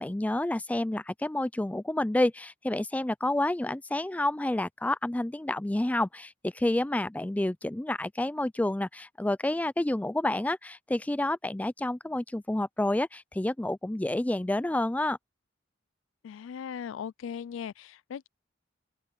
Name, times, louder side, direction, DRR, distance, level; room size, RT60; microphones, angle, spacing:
voice 1, 0.0-15.2, left 1 dB, 10° left, 0.3 m, -29 dB
voice 2, 16.2-18.3, left 7 dB, 90° left, 0.3 m, -38 dB
open air
head